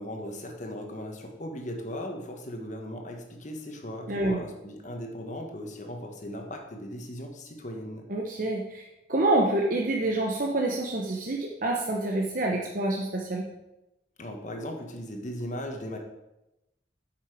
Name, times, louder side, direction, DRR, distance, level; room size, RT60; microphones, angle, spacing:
voice 1, 0.0-8.1 14.2-16.0, left 1 dB, 40° left, 3 dB, 1.3 m, -38 dB
voice 2, 4.1-4.4 8.1-13.5, right 2 dB, 50° right, -1 dB, 0.9 m, -27 dB
8.9 x 6.0 x 4.9 m, 0.93 s
head